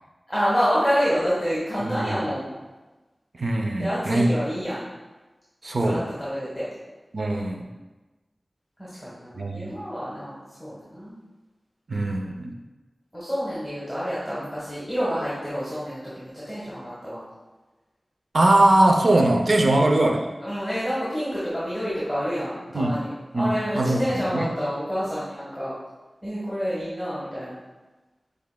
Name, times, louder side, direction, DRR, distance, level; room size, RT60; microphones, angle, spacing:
voice 1, 0.3-2.5 3.8-4.8 5.8-6.6 8.8-11.2 13.1-17.2 19.6-19.9 20.4-25.7 26.2-27.6, equal, 5° left, -10 dB, 1.4 m, -28 dB
voice 2, 1.8-2.2 3.4-4.3 5.6-6.0 7.1-7.6 9.4-9.7 11.9-12.5 18.3-20.3 22.7-23.0 23.3-24.5, right 1 dB, 65° right, 3 dB, 0.5 m, -21 dB
7.0 x 3.2 x 2.2 m, 1.2 s
wide cardioid pair, 70°, 0 cm